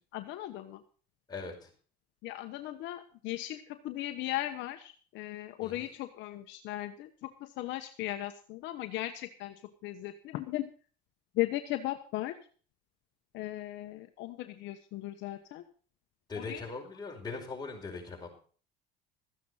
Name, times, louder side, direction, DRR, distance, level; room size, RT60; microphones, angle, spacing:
voice 1, 0.1-0.8 2.2-9.5 9.8-10.7 11.3-12.3 13.3-15.6 16.4-16.6, left 15 dB, 65° left, 7 dB, 1.1 m, -37 dB
voice 2, 1.3-1.7 5.6-5.9 16.3-18.3, left 3 dB, 20° left, 0 dB, 5.1 m, -40 dB
14.0 x 9.4 x 5.6 m, 0.42 s
supercardioid pair, 110°, 20 cm